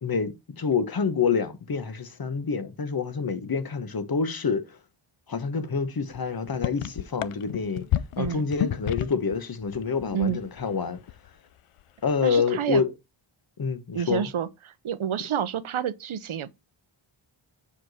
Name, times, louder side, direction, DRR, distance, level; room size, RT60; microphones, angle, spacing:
voice 1, 0.0-4.8 5.3-7.8 8.2-11.0 12.0-12.9 13.6-14.3, left 5 dB, 45° left, 1.1 m, -27 dB
sound 1, 6.1-6.2 6.5-9.4 9.6-10.7 11.0-11.3, left 12 dB, 85° left, 0.6 m, -30 dB
voice 2, 12.2-12.8 13.9-16.5, right 8 dB, 70° right, 0.8 m, -29 dB
7.3 x 4.9 x 4.1 m
wide cardioid pair, 70°, 50 cm